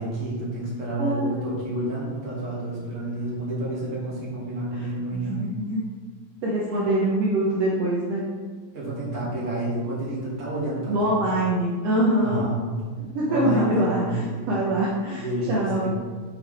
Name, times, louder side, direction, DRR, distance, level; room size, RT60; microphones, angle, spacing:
voice 1, 0.0-5.4 8.7-11.2 12.2-12.7 13.2-14.5 15.1-15.9, right 2 dB, 25° right, -8 dB, 1.7 m, -30 dB
voice 2, 1.0-1.5 4.7-5.8 6.4-8.3 10.9-12.4 13.1-15.9, right 1 dB, 80° right, -5 dB, 1.4 m, -24 dB
6.4 x 5.9 x 3.4 m, 1.5 s
omnidirectional pair, 4.1 m